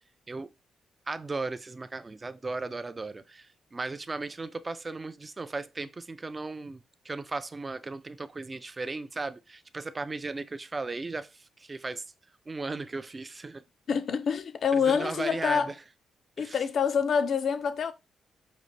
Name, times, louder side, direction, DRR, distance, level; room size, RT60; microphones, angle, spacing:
voice 1, 1.1-12.0 12.5-13.6 14.7-15.8 16.4-16.6, right 3 dB, 20° right, 0.3 m, -36 dB
voice 2, 13.9-15.7 16.4-17.9, left 6 dB, 55° left, 0.4 m, -26 dB
5.1 x 2.4 x 3.1 m
cardioid pair, 135°, 0 cm